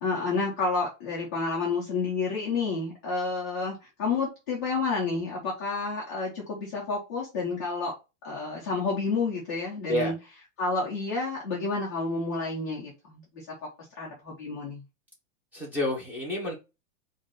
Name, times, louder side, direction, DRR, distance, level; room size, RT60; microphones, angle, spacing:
voice 1, 0.0-7.9 8.2-10.1 10.6-13.5 13.8-14.8, left 4 dB, 15° left, -6 dB, 0.3 m, -30 dB
voice 2, 15.5-16.6, left 1 dB, 5° right, -3 dB, 1.1 m, -29 dB
3.9 x 2.6 x 3.7 m, 0.26 s
supercardioid pair, 180°, 39 cm